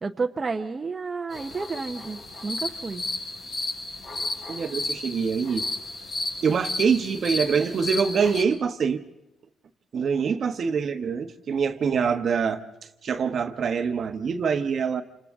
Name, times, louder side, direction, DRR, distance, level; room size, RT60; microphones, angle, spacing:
voice 1, 0.0-3.0 10.4-10.8, right 4 dB, 30° right, 0.9 m, -31 dB
sound 1, 1.3-8.4, left 2 dB, 60° left, 5.1 m, -33 dB
voice 2, 4.5-5.7 6.4-9.0 9.9-12.6 13.0-15.0, right 6 dB, 55° right, 1.1 m, -25 dB
28.5 x 26.0 x 3.7 m
cardioid pair, 90°, 0 cm